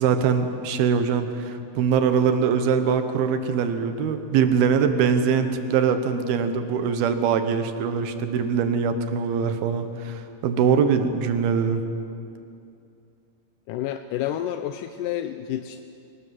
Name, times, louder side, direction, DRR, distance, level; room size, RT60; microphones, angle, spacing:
voice 1, 0.0-11.8, right 6 dB, 80° right, 8 dB, 3.1 m, -22 dB
voice 2, 13.7-15.8, left 11 dB, 80° left, 8 dB, 2.0 m, -29 dB
24.0 x 18.0 x 7.7 m, 2.5 s
omnidirectional pair, 4.4 m